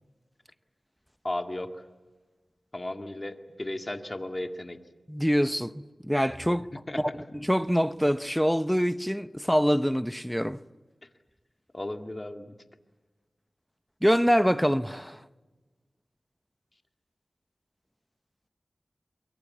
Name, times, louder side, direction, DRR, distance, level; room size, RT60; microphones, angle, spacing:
voice 1, 1.2-1.7 2.7-4.8 6.9-7.1 11.7-12.5, left 1 dB, 30° left, 2.1 m, -35 dB
voice 2, 5.1-6.7 7.0-10.6 14.0-15.3, equal, ahead, 0.7 m, -25 dB
24.0 x 23.0 x 8.4 m
cardioid pair, 50°, 0 cm